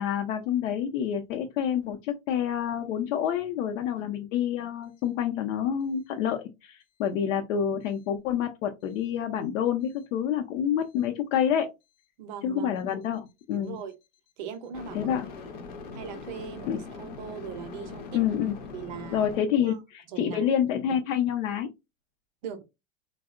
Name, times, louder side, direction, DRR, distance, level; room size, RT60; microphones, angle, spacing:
voice 1, 0.0-11.7 12.4-13.8 14.9-15.3 16.7-16.8 18.1-18.6 19.1-21.7, left 9 dB, 85° left, 0.6 m, -28 dB
sound 1, 9.9-10.0 14.7-19.4, left 4 dB, 35° left, 0.4 m, -41 dB
voice 2, 12.2-12.8 13.5-13.9 14.4-15.2 15.5-15.6 15.9-18.2 18.7-19.3 19.6-19.8 20.1-20.6 22.4-22.6, right 7 dB, 40° right, 0.4 m, -40 dB
3.4 x 2.0 x 2.3 m
supercardioid pair, 170°, 37 cm